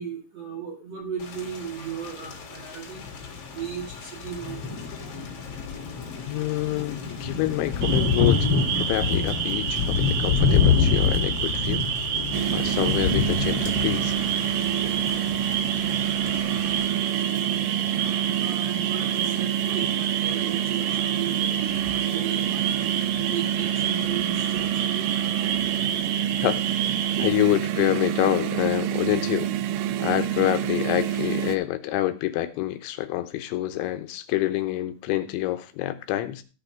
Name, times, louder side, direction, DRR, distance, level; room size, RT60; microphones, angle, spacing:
voice 1, 0.0-3.0 3.5-4.8 5.0-5.1 14.4-14.5 18.4-22.7 23.2-25.1 27.2-27.3, right 7 dB, 45° right, 2.4 m, -36 dB
Thunder / Rain, 1.2-16.9, left 5 dB, 45° left, 3.2 m, -27 dB
voice 2, 6.3-8.5 8.8-11.9 12.5-14.1 26.4-26.6 27.2-29.5 30.0-36.4, left 15 dB, 80° left, 3.1 m, -27 dB
sound 1, 7.8-27.3, right 8 dB, 70° right, 2.1 m, -30 dB
sound 2, 12.3-31.6, right 11 dB, 90° right, 3.4 m, -27 dB
14.5 x 5.8 x 5.1 m
omnidirectional pair, 5.4 m